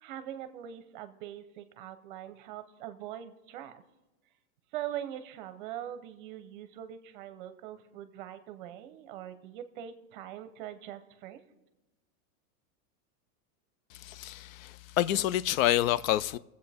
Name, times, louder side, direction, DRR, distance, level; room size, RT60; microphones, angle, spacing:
voice 1, 0.0-3.8 4.7-11.4, right 11 dB, 35° right, 0.7 m, -42 dB
voice 2, 13.9-16.4, left 13 dB, 65° left, 0.5 m, -28 dB
23.0 x 8.0 x 3.4 m
supercardioid pair, 175°, 45 cm